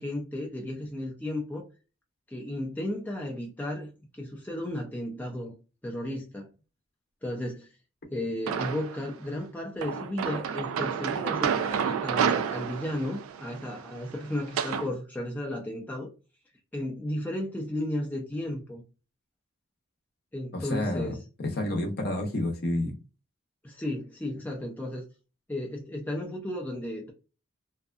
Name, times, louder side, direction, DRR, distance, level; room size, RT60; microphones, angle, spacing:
voice 1, 0.0-1.7 2.3-5.5 5.8-6.5 7.2-7.7 8.1-16.1 16.7-18.8 20.3-21.2 23.6-25.0 25.5-27.1, left 1 dB, 10° left, 0.4 m, -34 dB
sound 1, 8.5-9.1 9.8-14.9, right 7 dB, 85° right, 0.3 m, -30 dB
voice 2, 20.5-23.0, left 1 dB, 50° left, 0.6 m, -30 dB
2.6 x 2.2 x 2.4 m
head